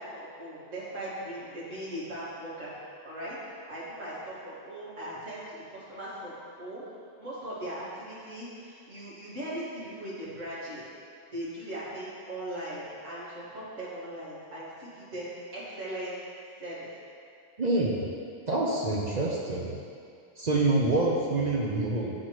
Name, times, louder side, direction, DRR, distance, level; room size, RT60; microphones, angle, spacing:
voice 1, 0.0-2.7 3.0-3.4 3.7-6.3 6.6-6.8 7.2-10.8 11.3-16.2 16.6-16.9, right 1 dB, 85° right, -9 dB, 2.3 m, -39 dB
voice 2, 17.6-18.1 18.5-19.8 20.4-22.1, right 2 dB, 40° right, -3 dB, 0.7 m, -26 dB
10.5 x 4.2 x 3.1 m, 2.4 s
omnidirectional pair, 1.3 m